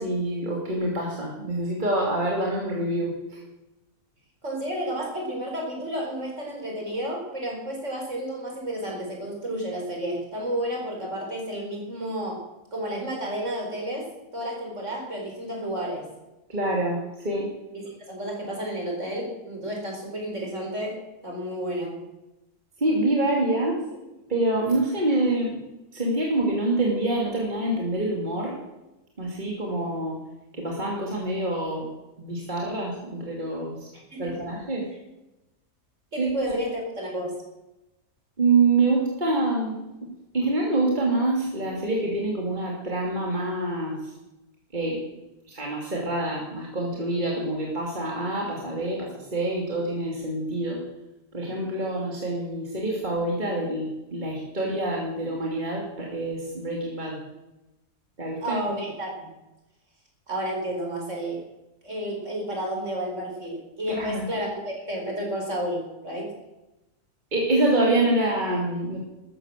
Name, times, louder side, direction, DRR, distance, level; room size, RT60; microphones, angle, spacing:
voice 1, 0.0-3.4 16.5-17.0 17.2-17.5 22.8-23.8 24.3-25.6 25.9-28.5 29.2-30.2 30.5-31.9 32.2-33.9 34.2-34.9 36.2-36.3 38.4-39.8 40.0-40.1 40.3-44.0 44.7-45.0 45.5-50.8 51.3-57.2 58.2-58.6 63.9-64.3 67.3-69.0, right 2 dB, 30° right, -2 dB, 3.1 m, -26 dB
voice 2, 4.4-12.5 12.7-16.1 17.7-22.0 33.9-34.4 36.1-37.4 58.4-59.3 60.3-61.4 61.8-66.3, equal, 50° right, 0 dB, 5.2 m, -31 dB
14.0 x 13.5 x 6.7 m, 0.97 s
omnidirectional pair, 1.6 m